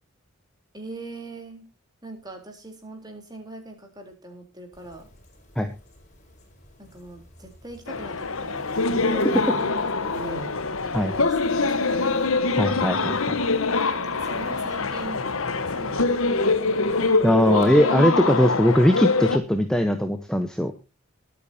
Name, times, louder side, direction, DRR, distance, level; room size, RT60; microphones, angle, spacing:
voice 1, 0.7-1.6 2.0-5.1 6.8-8.6 8.9-9.7 10.0-10.5 10.8-12.2 13.9-15.3 15.7-16.5, right 2 dB, 20° right, 3 dB, 3.6 m, -41 dB
sound 1, 4.7-17.6, left 1 dB, 35° left, 4.8 m, -43 dB
sound 2, 7.9-19.4, left 3 dB, 75° left, 1.2 m, -24 dB
voice 2, 12.6-13.4 17.2-20.7, equal, 5° left, 7 dB, 1.0 m, -20 dB
23.0 x 8.6 x 2.8 m, 0.28 s
head